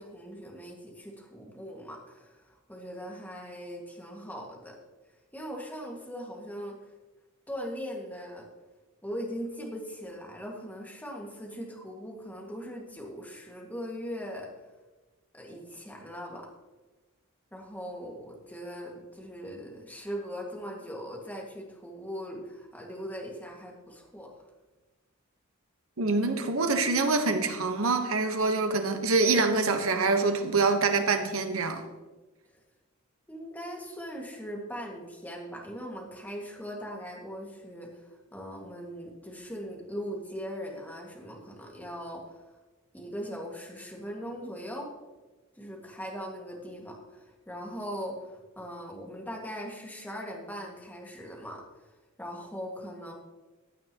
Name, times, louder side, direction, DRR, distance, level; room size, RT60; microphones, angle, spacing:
voice 1, 0.0-4.8 5.3-6.8 7.5-8.5 9.0-14.5 15.3-16.5 17.5-24.3 26.5-26.7 33.3-42.4 42.9-44.9 45.6-51.9 52.2-53.1, equal, 10° left, -1 dB, 1.9 m, -40 dB
voice 2, 26.0-31.8, right 3 dB, 75° right, 7 dB, 1.2 m, -25 dB
15.5 x 9.3 x 3.0 m, 1.2 s
head